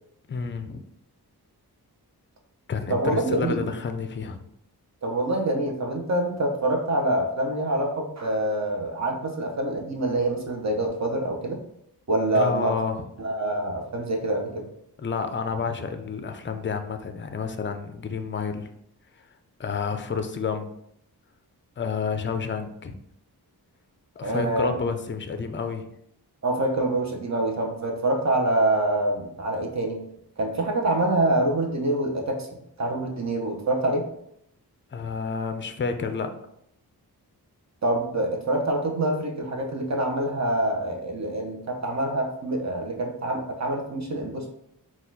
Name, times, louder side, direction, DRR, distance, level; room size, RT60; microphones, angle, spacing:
voice 1, 0.3-0.8 2.7-4.4 12.3-13.0 15.0-18.7 19.6-20.7 21.8-23.0 24.2-25.9 34.9-36.3, left 5 dB, 30° left, 8 dB, 0.5 m, -30 dB
voice 2, 2.9-3.6 5.0-11.6 12.1-12.7 13.2-14.7 24.2-24.8 26.4-30.0 30.4-32.5 32.8-34.1 37.8-44.5, right 1 dB, 45° right, 2 dB, 0.9 m, -26 dB
4.2 x 2.4 x 4.0 m, 0.74 s
wide cardioid pair, 70°, 39 cm